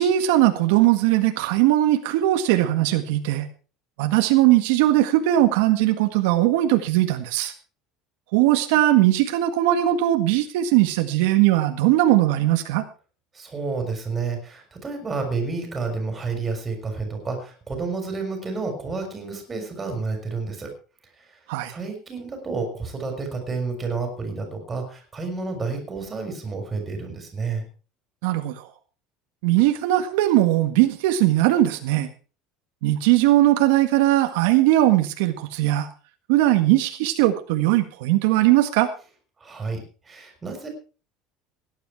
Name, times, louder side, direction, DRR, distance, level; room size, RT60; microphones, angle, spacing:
voice 1, 0.0-3.5 4.0-7.5 8.3-12.8 21.5-21.7 28.2-28.5 29.4-32.1 32.8-35.9 36.3-38.9, right 14 dB, 80° right, 6 dB, 1.7 m, -19 dB
voice 2, 13.3-20.7 21.7-27.6 39.4-39.8 40.1-40.7, right 4 dB, 15° right, 4 dB, 4.4 m, -30 dB
17.5 x 10.5 x 4.7 m, 0.36 s
cardioid pair, 175°, 0 cm